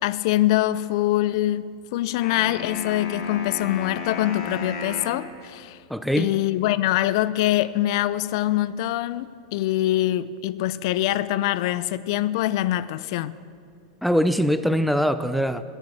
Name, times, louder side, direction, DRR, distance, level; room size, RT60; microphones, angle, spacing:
voice 1, 0.0-5.8 6.2-13.4, left 14 dB, 60° left, 0.4 m, -24 dB
sound 1, 2.2-5.2, left 4 dB, 45° left, 2.4 m, -34 dB
voice 2, 5.9-6.3 14.0-15.6, equal, ahead, 0.4 m, -22 dB
9.9 x 8.8 x 8.4 m
hypercardioid pair, 125°, 3 cm